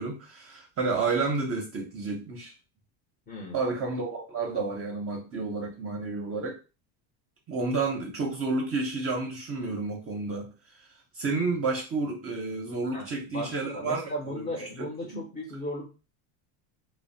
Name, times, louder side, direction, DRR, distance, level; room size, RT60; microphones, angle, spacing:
voice 1, 0.0-2.5 3.5-6.6 7.5-10.5 11.1-14.9 15.1-15.2, right 3 dB, 30° right, 1 dB, 0.6 m, -30 dB
voice 2, 3.3-3.6 12.9-15.9, left 1 dB, 20° left, 0 dB, 0.6 m, -36 dB
2.6 x 2.0 x 2.6 m, 0.32 s
supercardioid pair, 115°, 46 cm